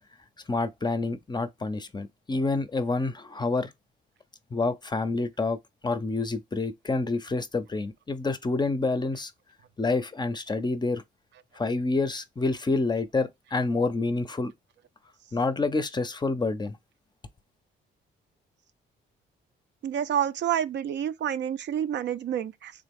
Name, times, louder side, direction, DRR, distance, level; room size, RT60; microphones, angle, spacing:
voice 1, 0.5-3.7 4.5-9.3 9.8-11.0 11.6-14.5 15.3-16.8, left 3 dB, 20° left, 0.5 m, -28 dB
voice 2, 19.8-22.7, right 9 dB, 65° right, 0.5 m, -28 dB
3.6 x 2.9 x 3.5 m
cardioid pair, 90°, 20 cm